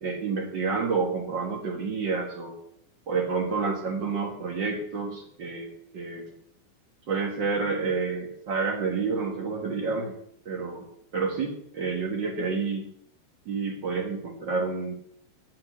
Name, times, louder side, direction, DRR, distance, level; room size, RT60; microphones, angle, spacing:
voice 1, 0.0-2.6 3.1-6.3 7.1-10.1 10.4-10.8 11.1-12.9 13.4-14.9, right 4 dB, 90° right, 1 dB, 1.0 m, -29 dB
10.0 x 7.5 x 7.3 m, 0.71 s
omnidirectional pair, 4.4 m